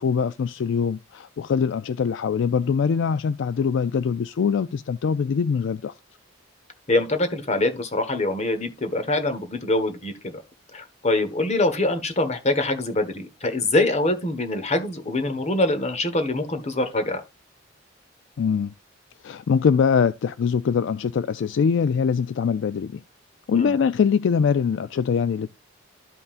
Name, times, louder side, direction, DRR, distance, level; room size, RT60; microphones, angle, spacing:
voice 1, 0.0-5.9 18.4-18.7 19.2-23.0 23.5-25.5, left 6 dB, 65° left, 0.3 m, -23 dB
voice 2, 6.9-10.4 10.7-17.2 23.5-23.7, left 2 dB, 35° left, 1.4 m, -24 dB
13.0 x 5.5 x 2.5 m
head